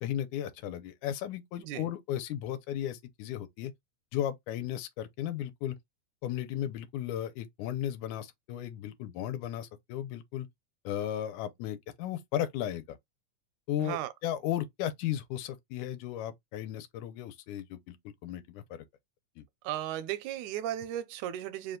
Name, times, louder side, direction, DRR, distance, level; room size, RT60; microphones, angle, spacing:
voice 1, 0.0-3.7 4.1-5.8 6.2-10.5 10.9-13.0 13.7-18.0 18.2-18.9 19.4-19.5, left 11 dB, 90° left, 2.1 m, -35 dB
voice 2, 13.8-14.1 19.6-21.8, right 12 dB, 85° right, 2.0 m, -35 dB
4.9 x 2.2 x 3.8 m
omnidirectional pair, 3.4 m